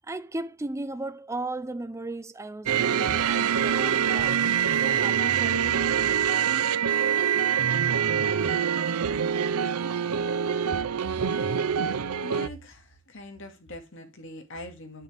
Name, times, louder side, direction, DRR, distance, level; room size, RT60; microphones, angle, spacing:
voice 1, 0.0-4.5 4.8-6.1, right 2 dB, 15° right, 0.5 m, -36 dB
sound 1, 2.7-12.5, right 8 dB, 90° right, 0.6 m, -25 dB
voice 2, 12.2-15.0, left 1 dB, 60° left, 2.1 m, -42 dB
8.5 x 6.6 x 3.4 m
head